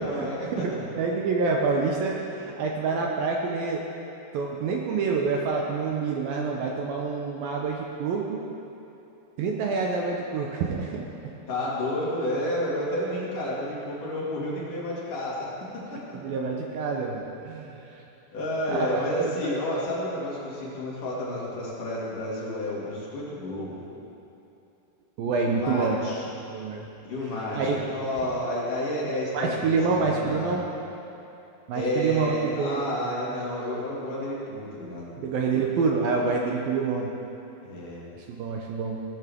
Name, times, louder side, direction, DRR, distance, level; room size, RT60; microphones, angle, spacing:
voice 1, 0.0-0.9 11.5-16.4 18.3-23.9 25.4-26.3 27.0-30.7 31.7-35.1 37.6-38.0, left 1 dB, 55° left, -6 dB, 3.6 m, -31 dB
voice 2, 0.5-3.8 4.3-8.4 9.4-11.1 16.2-18.0 18.7-19.5 25.2-26.0 26.4-26.9 27.5-27.8 29.3-30.7 31.7-33.1 33.6-33.8 35.2-37.1 38.2-39.0, right 4 dB, 75° right, 0 dB, 2.3 m, -27 dB
17.0 x 12.5 x 3.6 m, 2.8 s
omnidirectional pair, 4.8 m